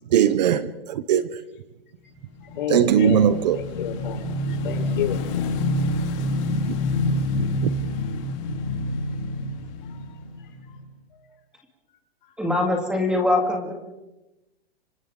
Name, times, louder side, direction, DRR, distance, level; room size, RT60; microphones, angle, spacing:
voice 1, 0.1-1.4 2.7-3.6 7.4-7.5, right 9 dB, 45° right, 0.9 m, -19 dB
Motorcycle / Engine, 2.3-10.8, left 2 dB, 30° left, 2.3 m, -27 dB
voice 2, 2.4-5.2 9.9-10.5 11.1-11.3, left 9 dB, 55° left, 4.2 m, -32 dB
voice 3, 12.4-13.7, left 2 dB, 5° right, 2.1 m, -22 dB
29.5 x 25.5 x 3.8 m
hypercardioid pair, 165°, 31 cm